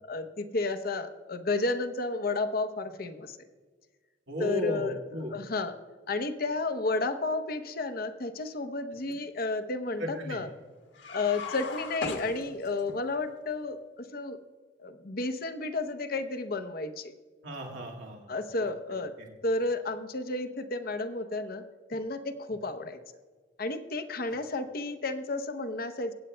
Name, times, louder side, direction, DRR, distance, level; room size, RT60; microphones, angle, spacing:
voice 1, 0.1-3.4 4.4-5.0 5.3-5.7 6.1-10.5 11.1-14.4 14.8-17.1 18.3-19.1 19.4-21.6 21.9-23.0 23.6-26.1, left 3 dB, 50° left, 8 dB, 0.8 m, -32 dB
voice 2, 4.3-5.3 10.0-10.4 17.4-18.3 18.6-18.7 19.2-19.3, equal, 75° right, -1 dB, 2.0 m, -35 dB
sound 1, 10.9-13.0, left 4 dB, 70° left, 1.5 m, -38 dB
23.5 x 8.9 x 2.2 m, 1.5 s
head